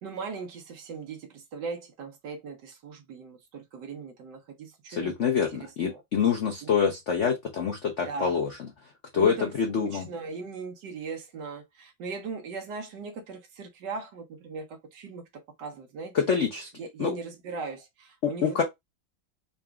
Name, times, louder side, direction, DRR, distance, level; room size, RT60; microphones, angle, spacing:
voice 1, 0.0-6.0 6.6-6.7 8.0-8.4 9.1-16.1 16.8-18.6, right 4 dB, 65° right, 1.3 m, -39 dB
voice 2, 4.9-8.5 9.1-10.1 16.1-16.7 17.0-17.1 18.2-18.6, left 6 dB, 85° left, 0.6 m, -26 dB
3.9 x 2.4 x 3.3 m
omnidirectional pair, 2.3 m